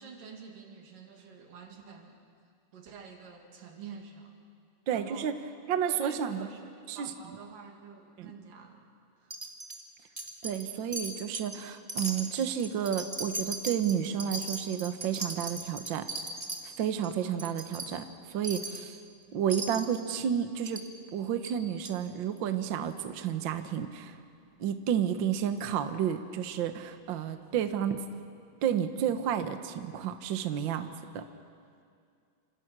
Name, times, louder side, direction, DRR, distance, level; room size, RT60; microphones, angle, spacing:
voice 1, 0.0-2.2 2.7-4.4 4.9-5.5 5.9-8.8 9.2-9.3, right 5 dB, 85° right, 2 dB, 4.0 m, -48 dB
voice 2, 4.9-5.4 5.7-6.5 6.9-7.1 8.2-8.3 10.4-16.1 16.6-19.0 19.3-20.8 21.1-24.2 24.6-28.0 28.6-31.2, right 9 dB, 70° right, 8 dB, 1.1 m, -31 dB
Wind chime, 9.3-9.8 10.2-10.7 10.9-11.6 11.9-16.6 17.0-17.1 17.4-17.9 18.4-18.8 19.5-20.0 20.7-20.9 21.4-21.5 21.8-21.9, right 2 dB, 20° right, 1.0 m, -38 dB
27.5 x 27.0 x 6.1 m, 2.3 s
omnidirectional pair, 3.7 m